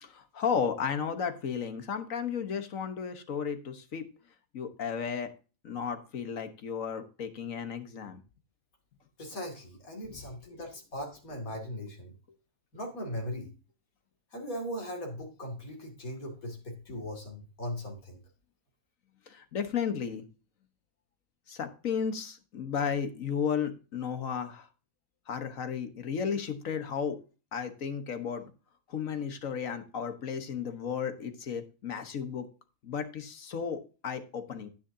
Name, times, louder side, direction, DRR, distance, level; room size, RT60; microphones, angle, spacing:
voice 1, 0.0-4.0 4.5-5.3 5.6-8.2 10.1-10.2 19.3-20.2 21.5-24.7 25.3-27.2 27.5-28.4 28.9-32.5 32.8-34.7, left 7 dB, 70° left, 8 dB, 1.6 m, -34 dB
voice 2, 9.2-12.1 12.7-13.5 14.3-18.2, equal, 90° left, 0 dB, 3.0 m, -39 dB
10.0 x 9.6 x 2.7 m, 0.34 s
omnidirectional pair, 1.4 m